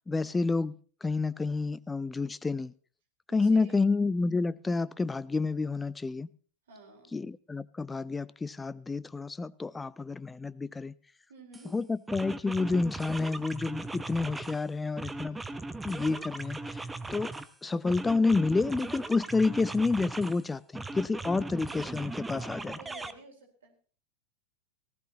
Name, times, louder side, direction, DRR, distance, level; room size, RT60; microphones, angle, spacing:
voice 1, 0.1-0.7 1.0-2.7 3.3-6.3 7.1-10.9 11.7-15.4 15.8-17.3 17.6-22.8, left 3 dB, 10° left, 0.7 m, -29 dB
voice 2, 3.3-3.9 6.7-7.2 11.3-11.7 22.3-23.7, right 4 dB, 70° right, 4.3 m, -51 dB
sound 1, 11.5-11.7 12.1-14.6 15.0-17.5 17.9-20.4 20.7-23.1, right 2 dB, 10° right, 1.0 m, -39 dB
19.0 x 17.0 x 3.0 m
figure-of-eight pair, 90°, 0 cm